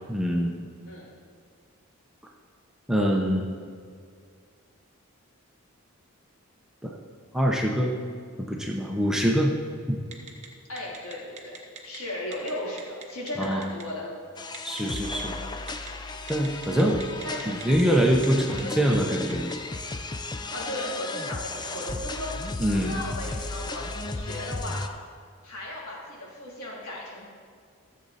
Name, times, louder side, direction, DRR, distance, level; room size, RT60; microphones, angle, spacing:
voice 1, 0.1-0.5 2.9-3.5 6.8-7.0 7.3-7.9 8.4-9.5 9.9-10.0 13.4-13.6 14.6-15.3 16.3-17.0 17.5-19.5 22.6-22.9, equal, ahead, -1 dB, 0.8 m, -24 dB
Telephone, 10.1-10.5 10.8-12.0 12.3-12.5 12.8-13.8 14.5-15.2 15.7-15.9 16.3-17.8 18.1-18.3 18.6-19.5, right 7 dB, 30° right, 1.0 m, -41 dB
voice 2, 10.7-14.1 17.2-17.5 17.8-18.8 20.4-24.8 25.4-27.3, left 1 dB, 85° left, -5 dB, 3.2 m, -36 dB
sound 1, 14.4-24.9, left 2 dB, 20° left, 0.4 m, -35 dB
14.0 x 7.6 x 4.2 m, 2.2 s
head